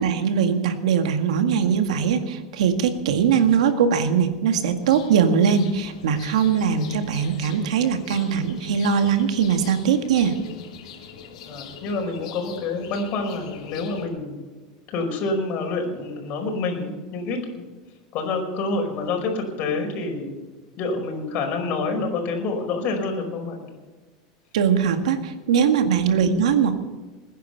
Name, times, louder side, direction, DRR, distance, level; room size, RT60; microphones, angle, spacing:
voice 1, 0.0-10.4 24.5-26.8, right 7 dB, 90° right, 7 dB, 1.9 m, -21 dB
sound 1, 4.8-14.1, left 7 dB, 80° left, 3.2 m, -42 dB
voice 2, 11.4-14.4 14.9-17.6 18.1-20.3 20.8-23.7 26.3-26.5, left 3 dB, 45° left, 2 dB, 5.1 m, -27 dB
20.0 x 10.5 x 6.7 m, 1.3 s
supercardioid pair, 130°, 3 cm